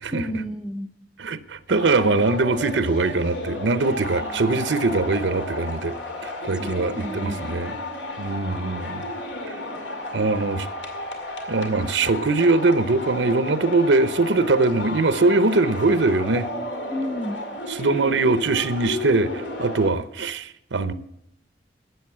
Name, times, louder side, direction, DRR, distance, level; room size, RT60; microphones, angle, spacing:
voice 1, 0.1-0.9 4.0-4.7 6.5-7.9 16.9-17.4, equal, 5° right, 0.6 m, -33 dB
voice 2, 1.2-6.0 6.2-7.7 8.2-9.1 9.5-9.6 10.1-10.7 11.5-16.5 17.8-20.9, right 3 dB, 85° right, 0.7 m, -22 dB
sound 1, 1.7-19.9, left 1 dB, 85° left, 2.2 m, -33 dB
12.5 x 8.0 x 8.3 m
head